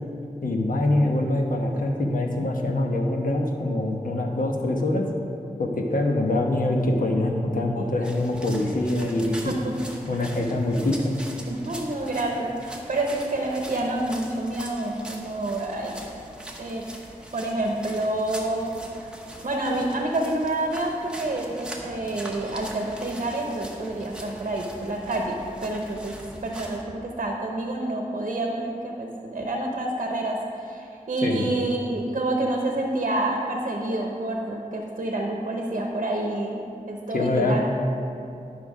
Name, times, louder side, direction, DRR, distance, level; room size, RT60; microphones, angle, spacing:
voice 1, 0.4-5.1 5.6-9.6 10.1-11.1 31.2-31.5 37.1-37.6, left 1 dB, 75° left, 1 dB, 1.1 m, -24 dB
sound 1, 8.0-26.8, right 1 dB, 5° right, 1.1 m, -42 dB
voice 2, 9.4-10.2 11.5-15.9 16.6-16.8 17.3-19.1 19.4-26.1 26.4-37.6, right 2 dB, 55° right, 1 dB, 0.9 m, -28 dB
11.0 x 5.7 x 5.0 m, 2.7 s
wide cardioid pair, 100°, 14 cm